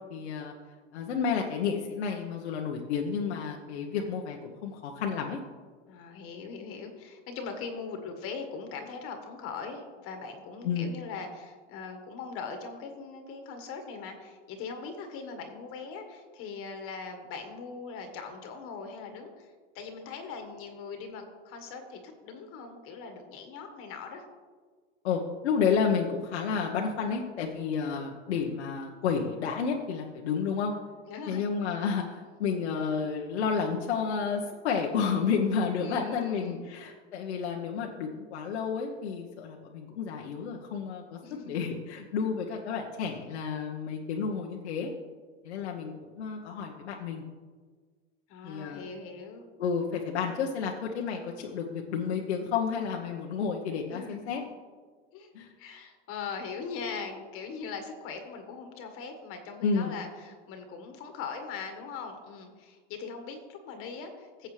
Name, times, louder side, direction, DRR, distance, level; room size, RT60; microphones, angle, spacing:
voice 1, 0.1-0.5 0.9-5.4 10.6-10.9 25.0-30.7 31.3-41.2 41.5-44.9 45.4-47.2 48.4-48.8 49.6-54.4 55.3-55.5 59.6-59.9, left 6 dB, 85° left, 0 dB, 1.1 m, -31 dB
voice 2, 5.9-24.2 31.1-31.4 35.8-36.7 41.2-41.8 48.3-49.4 53.9-54.4 55.1-55.3 55.6-64.5, left 5 dB, 40° left, 5 dB, 1.5 m, -41 dB
15.0 x 7.9 x 3.3 m, 1.5 s
supercardioid pair, 125°, 33 cm